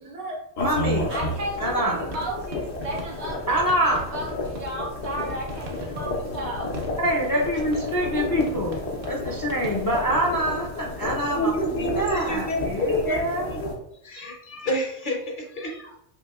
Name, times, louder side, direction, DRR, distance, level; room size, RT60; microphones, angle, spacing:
voice 1, 0.0-0.4 1.1-6.7 8.1-8.2, right 1 dB, 85° right, -2 dB, 1.3 m, -34 dB
sound 1, 0.6-13.7, left 2 dB, 75° left, 1.1 m, -32 dB
voice 2, 0.6-1.1 1.6-2.0 3.5-4.0 7.0-8.8 9.0-11.5 11.8-13.5, equal, 30° left, -2 dB, 0.4 m, -25 dB
sound 2, 1.5-10.1, right 1 dB, 60° right, 0.9 m, -42 dB
voice 3, 11.3-13.7 14.0-16.0, equal, 50° left, 0 dB, 0.9 m, -28 dB
5.9 x 2.7 x 2.4 m, 0.74 s
omnidirectional pair, 1.1 m